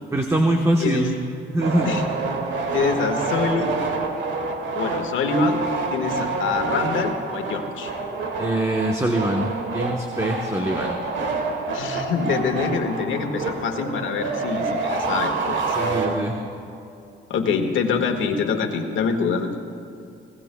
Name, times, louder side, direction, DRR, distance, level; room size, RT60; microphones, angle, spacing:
voice 1, 0.1-1.1 1.5-1.9 8.4-11.0 15.8-16.4, right 1 dB, 15° right, 2 dB, 1.1 m, -23 dB
voice 2, 0.8-1.1 1.8-2.1 2.7-3.8 4.7-5.6 5.9-7.9 11.7-15.7 17.3-19.6, left 5 dB, 75° left, 4 dB, 1.6 m, -25 dB
sound 1, 1.6-16.6, right 3 dB, 70° right, 2.0 m, -27 dB
26.5 x 18.5 x 2.3 m, 2.6 s
cardioid pair, 90°, 20 cm